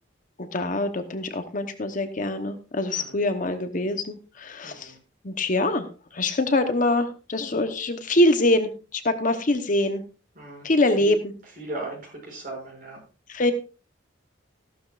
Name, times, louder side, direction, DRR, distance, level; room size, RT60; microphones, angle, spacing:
voice 1, 0.4-4.9 5.2-5.9 6.1-10.0 10.6-11.2 13.3-13.5, left 1 dB, 45° left, 8 dB, 1.0 m, -24 dB
voice 2, 4.6-4.9 10.3-10.7 11.0-11.1 11.6-13.0, right 2 dB, 45° right, -3 dB, 6.5 m, -37 dB
14.5 x 12.0 x 2.5 m, 0.33 s
head